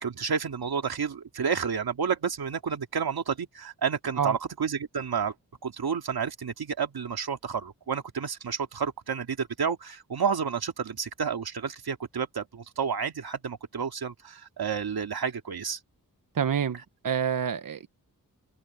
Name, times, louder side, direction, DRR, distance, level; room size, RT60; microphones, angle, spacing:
voice 1, 0.0-5.3 5.6-15.8, right 6 dB, 85° right, 2.5 m, -30 dB
voice 2, 16.3-16.8 17.0-17.9, right 8 dB, 65° right, 0.9 m, -27 dB
cardioid pair, 40°, 36 cm